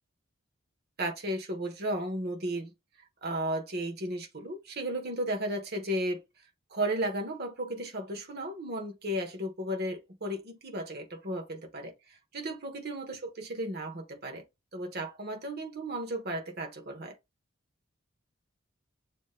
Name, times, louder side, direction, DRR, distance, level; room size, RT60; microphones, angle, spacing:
voice 1, 1.0-2.7 3.2-6.2 6.7-14.5 14.7-17.2, right 1 dB, 50° right, 1.2 m, -34 dB
7.0 x 3.0 x 2.3 m
head